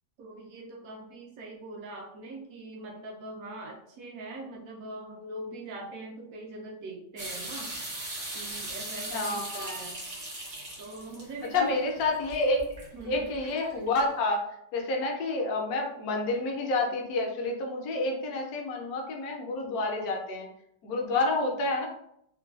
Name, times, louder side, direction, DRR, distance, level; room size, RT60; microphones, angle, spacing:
voice 1, 0.2-7.8 8.3-10.0 10.4-10.5 10.8-11.9 12.9-13.3, right 2 dB, 70° right, -1 dB, 0.9 m, -41 dB
sound 1, 7.2-14.0, right 1 dB, 45° right, 0.6 m, -39 dB
voice 2, 9.1-9.8 11.5-12.7 13.0-14.4 14.7-20.5 20.8-21.9, left 2 dB, 70° left, 1 dB, 1.0 m, -29 dB
3.2 x 2.2 x 2.3 m, 0.73 s
omnidirectional pair, 1.8 m